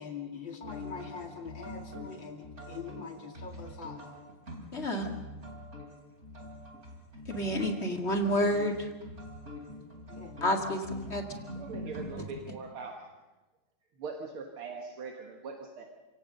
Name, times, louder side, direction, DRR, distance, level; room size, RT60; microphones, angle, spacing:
voice 1, 0.0-4.1 10.1-10.4, left 5 dB, 60° left, 3 dB, 3.2 m, -43 dB
sound 1, 0.6-12.4, left 1 dB, 30° right, 3.2 m, -44 dB
voice 2, 4.7-5.1 7.3-8.9 10.4-11.2, equal, 30° left, 3 dB, 2.1 m, -29 dB
voice 3, 11.6-13.1 14.0-15.9, right 4 dB, 75° right, 3 dB, 2.4 m, -41 dB
27.5 x 17.0 x 6.6 m, 1.2 s
omnidirectional pair, 2.4 m